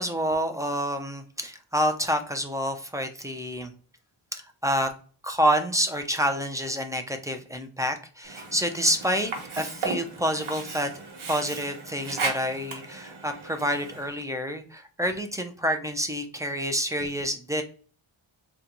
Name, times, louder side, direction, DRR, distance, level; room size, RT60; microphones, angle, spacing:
voice 1, 0.0-3.7 4.3-4.9 5.2-9.3 9.6-10.9 11.3-17.6, equal, 10° right, 6 dB, 0.3 m, -28 dB
Sink (filling or washing), 8.2-14.2, right 3 dB, 75° right, 0.9 m, -36 dB
3.8 x 2.3 x 2.8 m, 0.41 s
wide cardioid pair, 100°, 49 cm